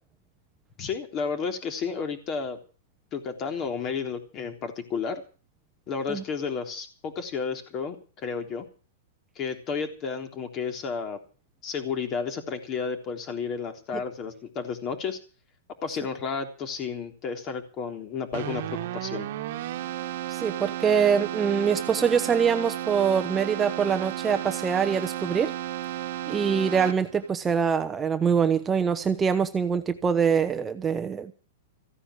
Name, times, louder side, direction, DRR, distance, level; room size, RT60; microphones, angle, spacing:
voice 1, 0.8-2.6 3.1-5.2 5.9-8.7 9.4-11.2 11.6-15.2 15.8-19.3, left 5 dB, 30° left, 3.6 m, -32 dB
Keyboard (musical), 18.3-27.3, right 14 dB, 60° right, 1.5 m, -33 dB
voice 2, 20.3-25.5 26.3-31.3, right 6 dB, 15° right, 1.1 m, -24 dB
15.5 x 9.7 x 8.4 m
hypercardioid pair, 140°, 0 cm